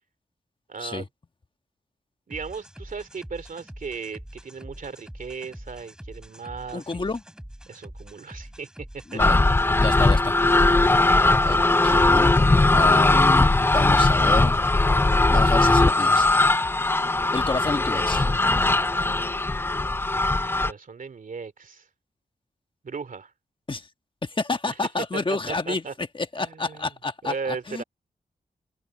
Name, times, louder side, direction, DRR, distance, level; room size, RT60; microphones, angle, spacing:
voice 1, 0.7-1.1 2.3-7.0 7.7-9.2 20.6-21.9 22.8-23.3 24.7-24.8 25.1-25.9 26.4-27.0 27.2-27.8, right 5 dB, 60° right, 2.7 m, -36 dB
sound 1, 2.3-17.1, equal, 5° right, 7.2 m, -44 dB
voice 2, 6.7-7.2 9.1-9.3 9.8-10.8 11.4-12.4 12.7-14.5 15.3-16.3 17.3-18.2 23.7-23.9 24.2-25.8 26.3-27.8, left 3 dB, 30° left, 1.4 m, -29 dB
sound 2, 9.2-20.7, left 2 dB, 15° left, 0.4 m, -19 dB
wide cardioid pair, 85°, 16 cm